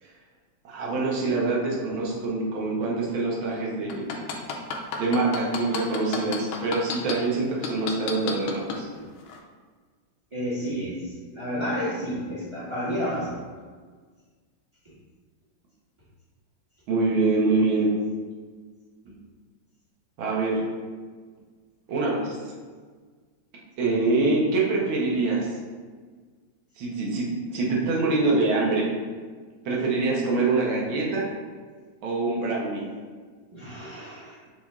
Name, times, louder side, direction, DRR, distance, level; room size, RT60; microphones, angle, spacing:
voice 1, 0.6-4.1 5.0-8.9 16.9-17.9 20.2-20.6 21.9-22.4 23.8-25.5 26.8-28.9 29.6-31.2 32.0-32.8, right 3 dB, 85° right, -3 dB, 1.7 m, -25 dB
sound 1, 3.9-7.1 7.6-8.8 9.3-9.4, left 7 dB, 90° left, 1.4 m, -30 dB
voice 2, 10.3-13.4 33.5-34.4, equal, 25° right, -8 dB, 0.6 m, -31 dB
5.8 x 2.4 x 3.5 m, 1.5 s
omnidirectional pair, 2.2 m